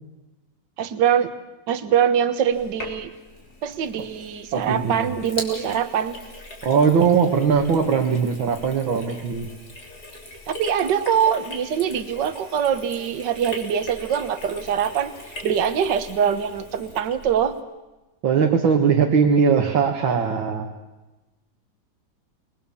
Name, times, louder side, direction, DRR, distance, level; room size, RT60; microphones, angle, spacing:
voice 1, 0.8-1.3 1.7-3.1 3.6-6.2 10.5-15.1 15.4-17.6, right 8 dB, 65° right, 11 dB, 1.9 m, -23 dB
Sink (filling or washing), 2.5-17.6, left 2 dB, 50° left, 3.7 m, -40 dB
voice 2, 4.5-5.1 6.6-9.5 18.2-20.7, right 6 dB, 85° right, 2 dB, 2.4 m, -20 dB
27.5 x 20.5 x 7.1 m, 1.1 s
omnidirectional pair, 2.1 m